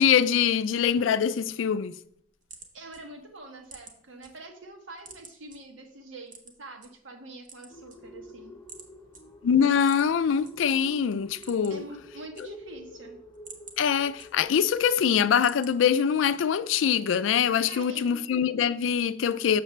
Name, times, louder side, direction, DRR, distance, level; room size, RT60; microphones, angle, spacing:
voice 1, 0.0-1.9 9.4-11.8 13.8-19.6, left 7 dB, 80° left, 0.4 m, -23 dB
sound 1, 2.0-4.3 4.7-5.6 6.3-6.9 7.3-8.3 8.7-8.9 9.1-9.2 9.8-10.5 10.9-11.0 11.3-11.9 12.2-12.8 13.2-14.7 15.1-15.7 16.2-16.7, right 4 dB, 40° right, 1.0 m, -48 dB
voice 2, 2.7-6.3 6.6-8.5 11.7-13.2 17.7-18.2, right 2 dB, 80° right, 1.1 m, -44 dB
sound 2, 7.7-15.0, left 1 dB, 20° left, 0.9 m, -49 dB
6.6 x 6.5 x 3.2 m
head